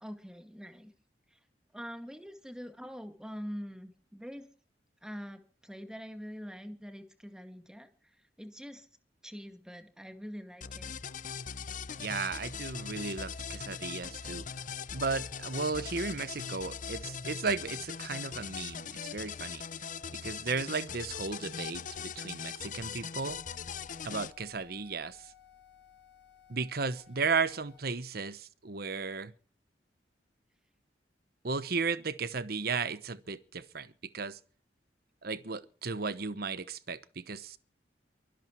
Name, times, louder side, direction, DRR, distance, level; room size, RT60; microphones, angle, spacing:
voice 1, 0.0-0.9 1.3-1.4 1.7-4.5 5.0-7.9 8.4-8.9 9.2-10.9, equal, 5° right, 2.0 m, -44 dB
sound 1, 10.6-24.3, left 6 dB, 50° left, 0.7 m, -40 dB
voice 2, 12.0-14.5 14.9-19.6 20.1-23.4 24.0-25.3 26.5-29.3 31.4-34.4 35.2-37.6, right 4 dB, 60° right, 1.0 m, -35 dB
sound 2, 23.3-27.8, left 8 dB, 75° left, 1.9 m, -57 dB
23.5 x 11.5 x 4.6 m
head